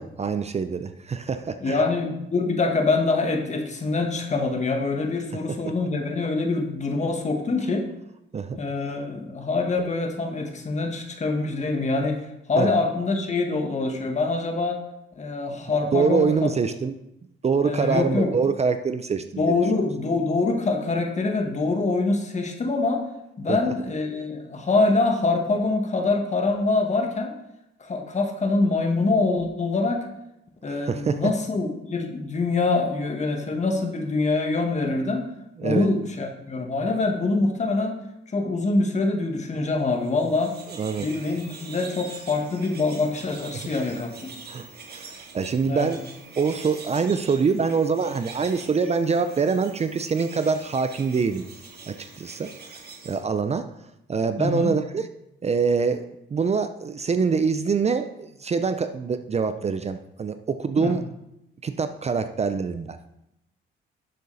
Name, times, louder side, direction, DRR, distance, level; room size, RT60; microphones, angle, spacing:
voice 1, 0.0-1.8 5.5-5.6 8.3-8.6 12.6-12.7 15.9-16.9 17.4-19.6 23.5-23.6 30.7-31.2 35.6-35.9 40.7-41.1 43.6-43.7 44.5-46.0 46.4-51.4 51.9-52.5 53.0-53.7 54.1-55.1 55.4-56.0 56.3-61.0 61.6-63.0, right 5 dB, 35° right, 10 dB, 0.6 m, -25 dB
voice 2, 1.6-7.9 8.5-14.8 15.1-16.5 17.6-18.3 19.4-23.1 23.4-27.3 27.8-30.0 30.6-35.3 35.6-38.0 38.3-40.5 41.0-44.3 45.7-45.9 54.4-54.7 60.8-60.9, left 3 dB, 35° left, 4 dB, 1.7 m, -25 dB
sound 1, 39.9-53.2, right 4 dB, 55° right, 2.0 m, -44 dB
11.5 x 6.8 x 4.1 m, 0.86 s
cardioid pair, 90°, 20 cm